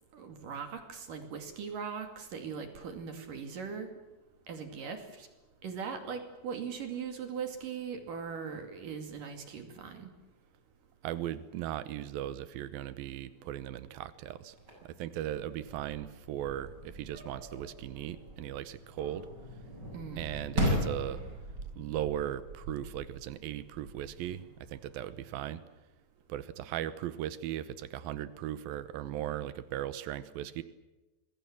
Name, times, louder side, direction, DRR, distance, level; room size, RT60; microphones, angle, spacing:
voice 1, 0.1-3.9 4.5-5.3 5.6-10.1 19.9-20.3, right 6 dB, 65° right, 6 dB, 3.9 m, -40 dB
voice 2, 11.0-14.6 14.8-19.3 20.2-21.2 21.8-25.6 26.3-30.6, right 12 dB, 90° right, 13 dB, 2.8 m, -38 dB
sound 1, 14.5-25.5, equal, 30° right, 8.1 m, -39 dB
26.5 x 22.0 x 7.4 m, 1.1 s
omnidirectional pair, 4.1 m